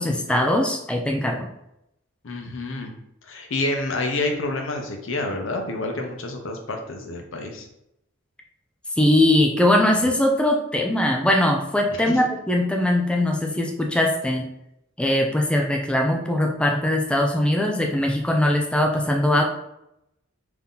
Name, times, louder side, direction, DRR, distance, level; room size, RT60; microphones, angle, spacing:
voice 1, 0.0-1.5 9.0-14.5 15.0-19.4, left 1 dB, 5° left, 1 dB, 0.4 m, -21 dB
voice 2, 2.2-2.9 3.3-7.7 12.1-12.2, left 2 dB, 75° left, 3 dB, 0.7 m, -28 dB
3.7 x 2.8 x 3.8 m, 0.82 s
head